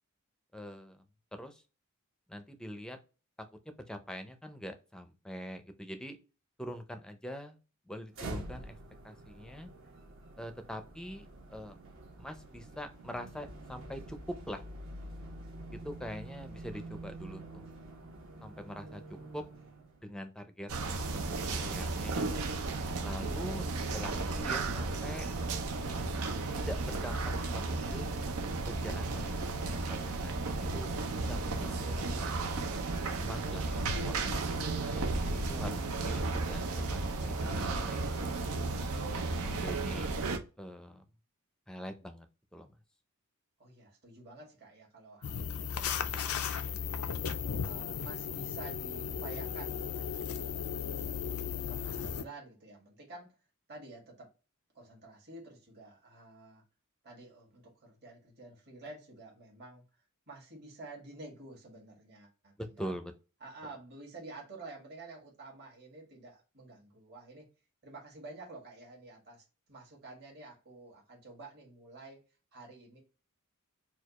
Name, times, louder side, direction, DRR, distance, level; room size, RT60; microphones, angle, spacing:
voice 1, 0.5-1.0 1.3-1.6 2.3-3.0 3.9-6.2 6.6-7.6 7.9-8.8 9.0-9.7 10.4-11.8 12.2-14.6 15.7-17.7 18.4-19.0 19.3-19.4 20.0-20.7 21.1-22.3 23.0-25.3 26.5-27.2 27.5-28.1 28.7-32.3 33.2-34.6 34.9-38.3 39.1-40.2 40.6-41.0 41.7-42.3 42.5-42.8 62.6-63.1, equal, 5° left, 0.5 m, -44 dB
sound 1, 8.1-20.1, right 2 dB, 65° right, 1.3 m, -47 dB
voice 2, 18.8-19.7 43.6-50.5 51.0-53.3 53.7-54.3 54.7-56.6 57.0-62.9 63.4-67.5 67.8-72.2 72.5-73.0, right 2 dB, 50° right, 1.7 m, -50 dB
sound 2, 20.7-40.4, right 3 dB, 80° right, 0.6 m, -34 dB
sound 3, 45.2-52.2, left 7 dB, 80° left, 0.4 m, -36 dB
4.3 x 2.3 x 2.9 m
head